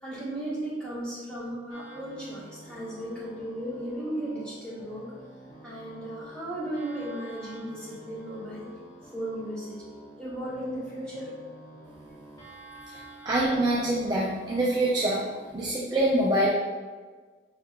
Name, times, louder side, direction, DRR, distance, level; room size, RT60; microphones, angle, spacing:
voice 1, 0.0-5.1 5.6-8.6 9.1-9.8 10.2-11.3 11.7-11.8 12.9-13.1, right 1 dB, 5° left, -9 dB, 1.4 m, -35 dB
sound 1, 1.7-15.5, right 2 dB, 20° left, 0.8 m, -49 dB
voice 2, 13.2-15.2 15.5-16.5, right 1 dB, 25° right, -6 dB, 0.5 m, -25 dB
5.7 x 3.2 x 2.4 m, 1.4 s
head